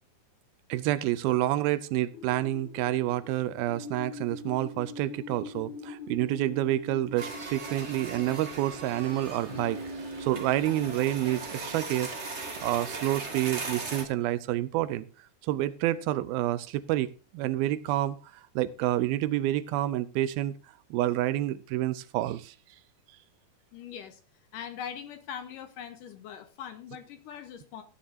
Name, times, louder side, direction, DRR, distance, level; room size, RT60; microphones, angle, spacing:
voice 1, 0.7-9.8 10.2-12.1 12.6-15.1 15.4-17.1 17.3-18.2 18.6-20.5 20.9-22.5, right 14 dB, 80° right, 15 dB, 2.5 m, -28 dB
sound 1, 2.1-13.0, left 2 dB, 55° left, 2.6 m, -43 dB
sound 2, 7.2-14.0, right 3 dB, 35° right, 1.0 m, -38 dB
voice 2, 23.7-24.2 24.5-27.8, left 8 dB, 75° left, 9 dB, 2.2 m, -41 dB
15.5 x 9.9 x 2.7 m, 0.33 s
omnidirectional pair, 4.4 m